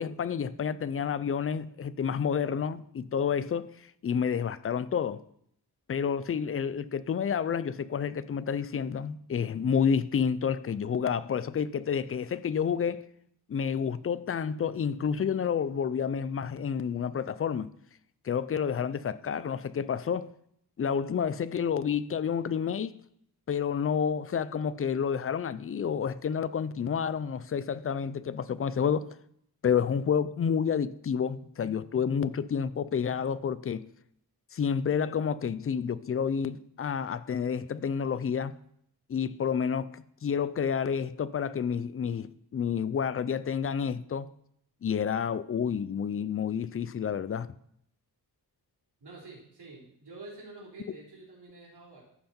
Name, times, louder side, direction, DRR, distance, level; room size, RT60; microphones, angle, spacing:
voice 1, 0.0-3.7 4.0-5.2 5.9-13.0 13.5-17.7 18.2-20.3 20.8-23.0 23.5-29.1 29.6-33.9 34.5-38.5 39.1-44.3 44.8-47.5, left 7 dB, 35° left, 0.4 m, -29 dB
voice 2, 49.0-52.0, right 2 dB, 80° right, 3.9 m, -48 dB
14.0 x 5.7 x 4.3 m
wide cardioid pair, 125°, 39 cm